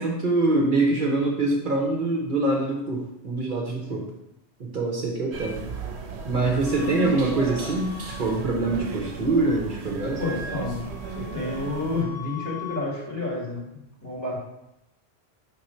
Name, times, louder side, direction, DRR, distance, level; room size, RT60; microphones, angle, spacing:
voice 1, 0.0-4.1 4.6-5.6 6.3-10.2, right 2 dB, 50° right, -1 dB, 1.0 m, -24 dB
sound 1, 5.3-12.0, right 5 dB, 80° right, 1.0 m, -36 dB
Wind instrument woodwind instrument, 6.6-9.6 9.8-12.9, left 5 dB, 20° right, 0.6 m, -42 dB
voice 2, 10.2-10.9 11.2-14.4, left 2 dB, 15° left, -5 dB, 1.6 m, -30 dB
4.6 x 3.8 x 5.6 m, 0.86 s
omnidirectional pair, 1.1 m